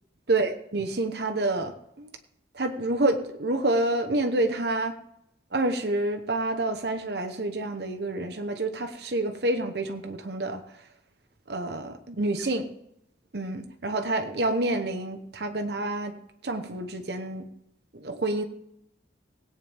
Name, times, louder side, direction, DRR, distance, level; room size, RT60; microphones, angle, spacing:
voice 1, 0.3-2.1 2.5-4.9 5.5-10.6 11.5-12.7 13.3-16.1 16.4-17.5 17.9-18.4, right 2 dB, 60° right, 6 dB, 1.0 m, -28 dB
17.5 x 9.0 x 3.5 m, 0.77 s
head